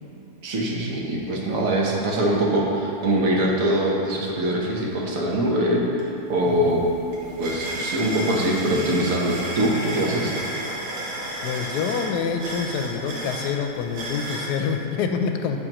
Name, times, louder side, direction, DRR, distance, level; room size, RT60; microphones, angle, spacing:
voice 1, 0.4-5.8 6.3-6.8 7.4-10.3, right 1 dB, 55° right, -2 dB, 1.3 m, -23 dB
sound 1, 6.0-6.1 6.4-14.5, right 1 dB, 80° right, 1.8 m, -33 dB
voice 2, 6.4-6.7 11.4-15.6, left 6 dB, 75° left, 6 dB, 1.1 m, -26 dB
9.7 x 6.8 x 3.0 m, 2.8 s
omnidirectional pair, 1.8 m